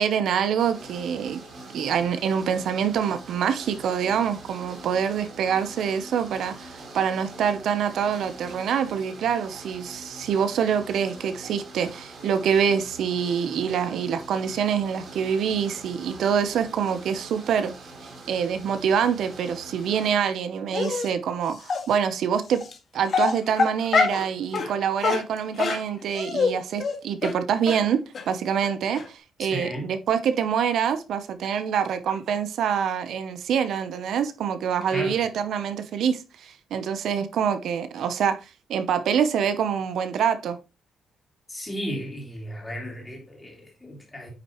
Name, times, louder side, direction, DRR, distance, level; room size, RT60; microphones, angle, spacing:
voice 1, 0.0-1.4 1.7-17.7 18.3-22.6 22.9-38.4 38.7-40.6, right 7 dB, 75° right, 0.7 m, -25 dB
sound 1, 0.6-20.1, right 2 dB, 50° right, 3.2 m, -44 dB
Dog, 20.7-21.1 21.7-21.8 22.6-22.7 23.1-24.2 24.5-24.7 25.0-26.5 26.8-26.9 27.2-27.3 27.7-27.8 28.1-28.2 28.6-28.7 29.0-29.1, left 5 dB, 45° left, 1.8 m, -24 dB
voice 2, 29.5-29.9 34.9-35.2 41.5-44.3, equal, 15° left, 3.1 m, -34 dB
9.1 x 6.1 x 3.0 m
wide cardioid pair, 155°, 0 cm